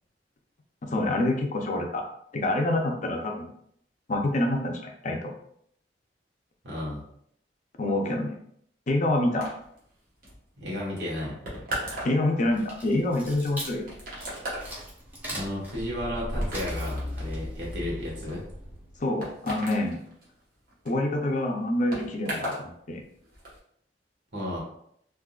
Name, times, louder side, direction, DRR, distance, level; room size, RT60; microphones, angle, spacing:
voice 1, 0.9-2.0 2.3-3.5 4.1-5.3 7.8-8.4 8.9-9.5 12.0-13.9 19.0-20.0 20.9-23.0, left 1 dB, 45° left, 2 dB, 0.5 m, -26 dB
voice 2, 6.6-7.0 10.6-11.3 15.3-18.4 24.3-24.6, left 1 dB, 80° right, -5 dB, 1.4 m, -33 dB
sound 1, 9.4-22.7 23.0-23.6, right 1 dB, 55° right, 1.1 m, -39 dB
sound 2, 12.4-19.0, equal, 10° right, 0.7 m, -36 dB
3.6 x 2.5 x 2.3 m, 0.70 s
head